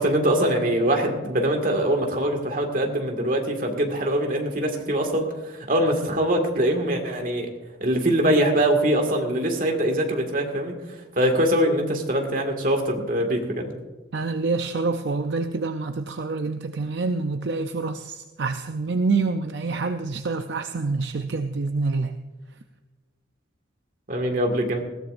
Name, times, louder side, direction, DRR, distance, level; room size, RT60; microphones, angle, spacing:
voice 1, 0.0-7.5 7.8-10.8 11.2-13.7 24.1-24.8, right 1 dB, 45° right, 3 dB, 2.0 m, -23 dB
voice 2, 14.1-22.2, right 3 dB, 65° right, 7 dB, 0.6 m, -27 dB
20.5 x 15.5 x 2.6 m, 1.3 s
head